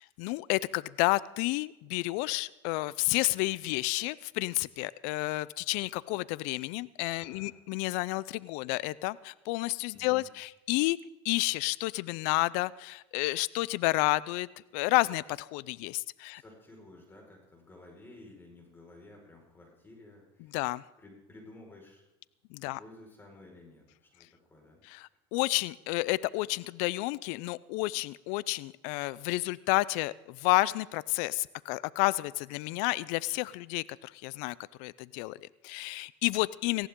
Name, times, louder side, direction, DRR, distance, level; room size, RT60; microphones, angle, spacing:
voice 1, 0.0-11.0 11.2-14.5 14.7-16.4 20.5-20.8 22.5-22.8 24.9-36.9, left 21 dB, 70° left, 21 dB, 0.5 m, -30 dB
voice 2, 7.1-7.5 9.9-10.3 16.3-20.6 21.0-22.0 22.6-24.8, left 2 dB, 15° left, 0 dB, 4.9 m, -53 dB
18.0 x 15.5 x 3.7 m, 0.95 s
supercardioid pair, 100°, 13 cm